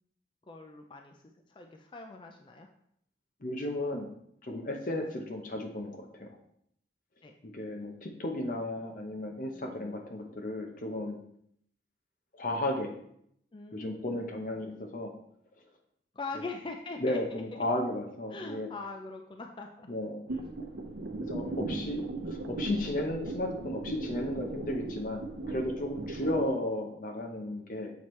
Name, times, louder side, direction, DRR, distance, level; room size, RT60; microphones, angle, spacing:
voice 1, 0.5-1.2 1.5-2.7 7.2-7.4 9.5-10.0 13.5-14.2 16.2-17.4 18.3-19.9 20.3-20.5 21.4-22.0, left 3 dB, 25° left, 4 dB, 0.4 m, -42 dB
voice 2, 3.4-4.1 4.4-6.3 7.5-11.2 12.3-13.0 13.7-15.1 17.0-18.7 19.9-20.2 21.3-27.9, left 1 dB, 45° left, 3 dB, 0.8 m, -34 dB
sound 1, 20.3-26.5, right 2 dB, 80° right, 0.7 m, -37 dB
7.1 x 4.6 x 3.1 m, 0.70 s
head